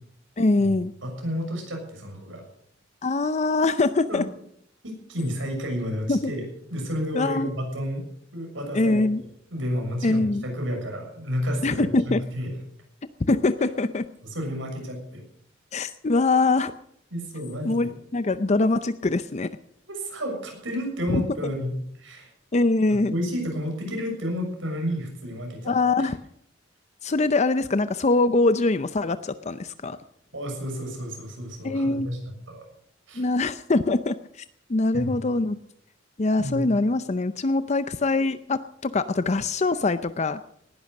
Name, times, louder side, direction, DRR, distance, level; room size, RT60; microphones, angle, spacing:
voice 1, 0.4-0.9 3.0-4.2 6.1-6.3 7.1-7.5 8.7-9.2 10.0-10.4 11.6-12.2 13.3-14.1 15.7-16.7 17.6-19.5 21.1-21.2 22.5-23.1 25.6-26.2 27.0-30.0 31.6-32.1 33.2-34.4 34.7-35.6 36.2-40.4, left 3 dB, 35° left, 12 dB, 0.6 m, -23 dB
voice 2, 1.0-2.4 4.1-4.2 4.8-6.4 6.7-8.0 8.3-12.5 14.2-15.2 17.1-17.9 19.9-21.7 22.0-22.3 22.9-25.7 26.0-26.1 30.3-32.2 32.5-32.6 33.1-33.2 34.9-35.2 36.4-36.7, equal, 85° right, 2 dB, 6.7 m, -31 dB
18.5 x 11.5 x 6.5 m, 0.69 s
head